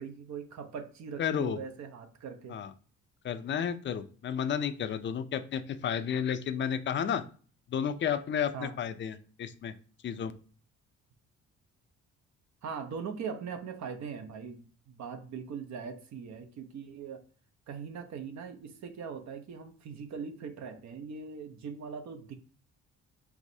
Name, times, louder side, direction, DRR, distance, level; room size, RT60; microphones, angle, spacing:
voice 1, 0.0-2.6 8.5-8.8 12.6-17.2 17.7-22.4, right 6 dB, 65° right, 7 dB, 0.8 m, -41 dB
voice 2, 1.2-1.6 2.5-2.7 3.2-7.2 7.7-9.7 10.0-10.3, left 8 dB, 40° left, 10 dB, 0.5 m, -32 dB
4.8 x 3.2 x 2.7 m, 0.40 s
cardioid pair, 90°, 30 cm